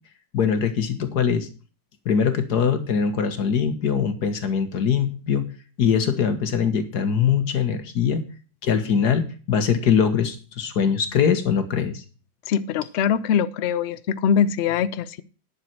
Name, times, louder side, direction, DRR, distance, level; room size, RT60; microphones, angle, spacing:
voice 1, 0.3-1.5 2.1-5.5 5.8-8.2 8.6-12.0, left 7 dB, 60° left, 9 dB, 1.9 m, -22 dB
voice 2, 12.5-15.2, left 8 dB, 80° left, 15 dB, 0.6 m, -22 dB
10.5 x 7.0 x 5.9 m, 0.36 s
omnidirectional pair, 2.0 m